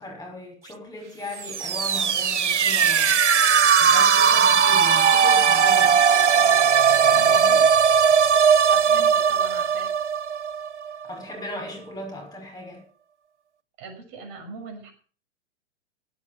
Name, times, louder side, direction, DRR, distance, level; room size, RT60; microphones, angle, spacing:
voice 1, 0.0-3.2 3.8-6.0 6.9-7.7 11.0-12.8, left 1 dB, 10° left, 6.0 m, -37 dB
sound 1, 1.4-11.1, right 7 dB, 85° right, 0.7 m, -18 dB
voice 2, 7.1-7.6 8.7-9.9 13.8-14.9, right 4 dB, 45° right, 6.2 m, -40 dB
16.0 x 8.4 x 7.1 m
figure-of-eight pair, 105°, 34 cm